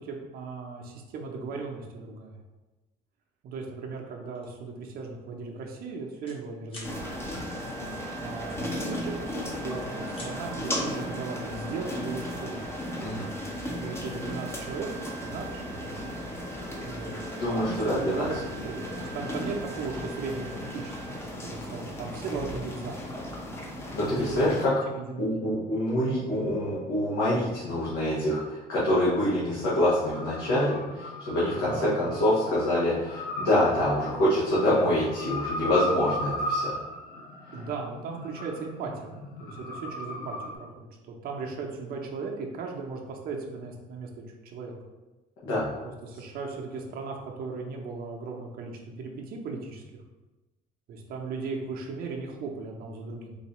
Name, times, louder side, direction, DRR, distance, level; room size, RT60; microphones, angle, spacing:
voice 1, 0.0-2.4 3.4-7.0 8.2-12.6 13.7-16.0 16.8-23.0 24.2-25.5 31.6-32.2 34.0-34.1 37.5-44.7 45.8-49.8 50.9-53.3, right 4 dB, 65° right, 0 dB, 0.6 m, -37 dB
sound 1, 4.4-4.6 5.0-5.2 5.5-6.4 6.7-6.9 8.5-9.3 9.6-10.3, left 2 dB, 30° left, 1.1 m, -46 dB
sound 2, 6.8-24.7, equal, 15° left, 0.6 m, -35 dB
voice 2, 17.4-18.3 23.9-24.7 25.2-36.8 45.4-45.7, left 1 dB, 80° left, -9 dB, 1.1 m, -26 dB
sound 3, 30.1-40.6, left 1 dB, 60° left, 0.7 m, -36 dB
4.0 x 2.6 x 3.0 m, 1.1 s
cardioid pair, 110°, 17 cm